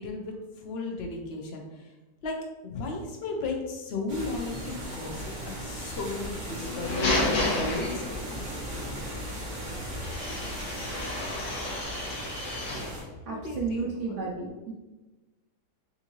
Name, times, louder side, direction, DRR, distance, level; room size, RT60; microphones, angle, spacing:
voice 1, 0.0-1.9 2.2-9.1 13.3-14.2, left 3 dB, 60° left, 2 dB, 0.7 m, -36 dB
sound 1, 4.1-13.0, equal, 50° right, 1.6 m, -37 dB
sound 2, 6.5-8.5 10.0-13.0, left 2 dB, 90° left, 1.5 m, -31 dB
voice 2, 13.3-14.7, right 4 dB, 75° right, -1 dB, 0.7 m, -32 dB
5.3 x 2.6 x 3.0 m, 1.1 s
omnidirectional pair, 1.8 m